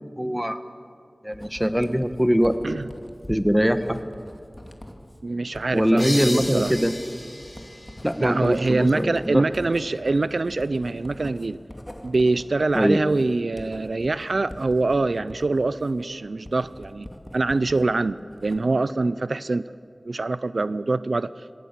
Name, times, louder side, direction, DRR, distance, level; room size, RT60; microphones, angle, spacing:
voice 1, 0.2-0.6 1.2-2.6 3.3-4.0 5.7-6.9 8.0-9.4 12.7-13.0, equal, 5° right, 10 dB, 1.3 m, -22 dB
Writing, 1.3-17.9 18.2-18.9, left 1 dB, 20° left, 2.5 m, -43 dB
voice 2, 5.2-6.7 8.2-11.6 12.0-17.1 17.3-19.7 20.0-21.6, right 3 dB, 85° right, 16 dB, 0.4 m, -24 dB
sound 1, 6.0-9.4, left 1 dB, 35° left, 7.2 m, -35 dB
20.5 x 17.5 x 8.3 m, 2.2 s
wide cardioid pair, 45°, 0 cm